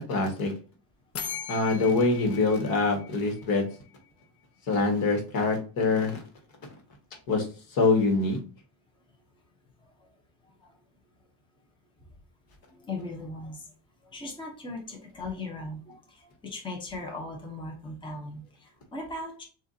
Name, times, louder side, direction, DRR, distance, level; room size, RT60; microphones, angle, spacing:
voice 1, 0.1-0.5 1.5-3.6 4.7-6.2 7.3-7.5 7.7-8.4, left 3 dB, 55° left, 3 dB, 1.6 m, -24 dB
sound 1, 1.2-3.9, left 8 dB, 35° left, 0.6 m, -39 dB
voice 2, 12.7-13.7 14.0-19.4, left 2 dB, 10° left, 0 dB, 0.9 m, -39 dB
6.8 x 2.6 x 2.7 m, 0.38 s
cardioid pair, 155°, 42 cm